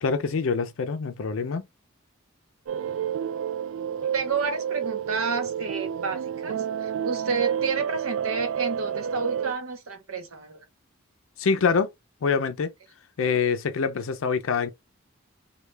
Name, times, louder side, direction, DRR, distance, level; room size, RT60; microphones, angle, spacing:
voice 1, 0.0-1.7 11.4-11.9 12.2-12.7 13.2-14.7, left 5 dB, 70° left, 0.4 m, -25 dB
sound 1, 2.7-9.5, right 8 dB, 65° right, 0.3 m, -29 dB
voice 2, 4.1-10.7, right 4 dB, 85° right, 1.0 m, -30 dB
3.2 x 2.2 x 3.2 m
head